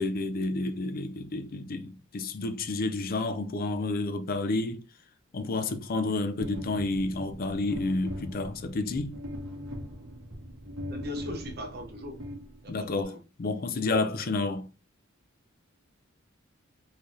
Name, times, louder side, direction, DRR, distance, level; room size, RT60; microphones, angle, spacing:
voice 1, 0.0-4.8 5.3-9.2 12.7-14.7, left 2 dB, 45° left, 0.4 m, -30 dB
sound 1, 6.4-13.0, equal, 80° right, 1.3 m, -40 dB
voice 2, 10.9-12.2 12.6-13.2, left 1 dB, 50° right, 0.9 m, -40 dB
3.7 x 3.2 x 2.7 m
head